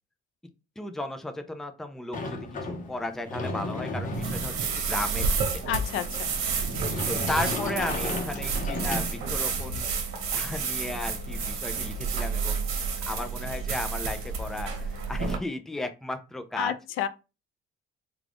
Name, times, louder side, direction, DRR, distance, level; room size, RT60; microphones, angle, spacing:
voice 1, 0.8-5.3 5.5-5.6 7.1-9.9 10.3-16.7, left 1 dB, ahead, 0.4 m, -35 dB
Sliding door, 2.1-9.6, left 2 dB, 40° left, 0.8 m, -35 dB
sound 1, 4.1-15.4, right 5 dB, 75° right, 1.0 m, -30 dB
voice 2, 5.7-6.3 16.6-17.1, left 11 dB, 75° left, 0.4 m, -30 dB
3.6 x 2.3 x 3.4 m
cardioid pair, 135°, 21 cm